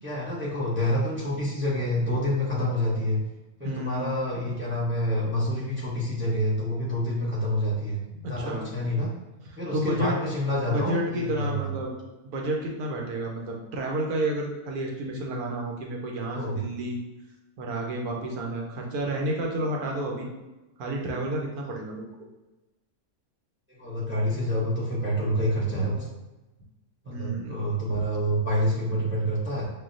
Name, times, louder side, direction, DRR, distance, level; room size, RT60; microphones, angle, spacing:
voice 1, 0.0-3.2 3.6-9.1 9.6-11.7 16.3-16.6 23.7-26.1 27.0-29.6, equal, 15° right, -5 dB, 0.5 m, -27 dB
voice 2, 3.6-4.1 8.2-8.6 9.7-10.1 10.7-11.9 12.3-17.0 17.6-20.3 20.8-22.0 27.1-27.6, right 1 dB, 90° right, 0 dB, 1.2 m, -30 dB
6.0 x 2.2 x 2.5 m, 1.1 s
omnidirectional pair, 1.6 m